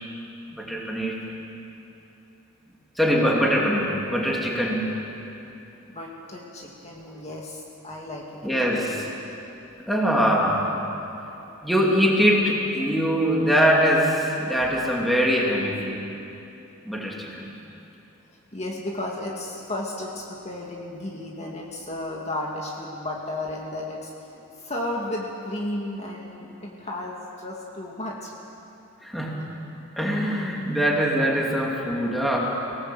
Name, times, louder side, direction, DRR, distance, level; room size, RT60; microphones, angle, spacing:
voice 1, 0.5-1.2 3.0-4.9 7.1-7.2 8.4-9.1 9.9-10.7 11.6-16.0 16.8-17.5 29.0-29.4 30.0-32.6, equal, ahead, -3 dB, 2.9 m, -23 dB
voice 2, 5.8-9.1 18.5-24.3 24.6-28.3, left 1 dB, 30° left, -2 dB, 2.2 m, -34 dB
25.5 x 18.0 x 7.9 m, 2.9 s
head